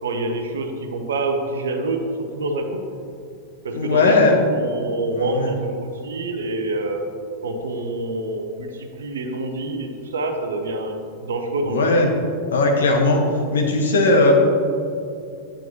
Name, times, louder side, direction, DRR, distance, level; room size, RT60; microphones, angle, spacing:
voice 1, 0.0-2.0 2.3-2.8 3.6-7.0 7.4-11.0 11.2-11.8, right 2 dB, 65° right, 5 dB, 0.8 m, -26 dB
voice 2, 3.7-4.3 5.1-5.5 11.7-12.1 12.5-13.2 13.5-14.3, left 2 dB, 65° left, 2 dB, 1.2 m, -17 dB
9.1 x 8.8 x 2.9 m, 2.5 s
figure-of-eight pair, 90°, 0 cm